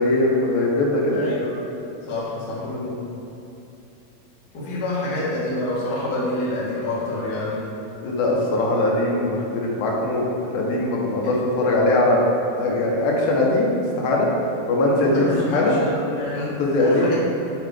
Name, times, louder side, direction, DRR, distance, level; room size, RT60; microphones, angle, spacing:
voice 1, 0.0-1.2 2.6-3.0 8.0-12.2 12.5-14.3 14.7-15.8 16.4-17.1, left 2 dB, 75° left, -2 dB, 2.5 m, -21 dB
voice 2, 1.1-1.5 2.1-3.0 4.5-7.6 15.1-17.1, left 2 dB, 60° left, -8 dB, 1.1 m, -27 dB
7.5 x 4.8 x 3.3 m, 2.8 s
omnidirectional pair, 4.4 m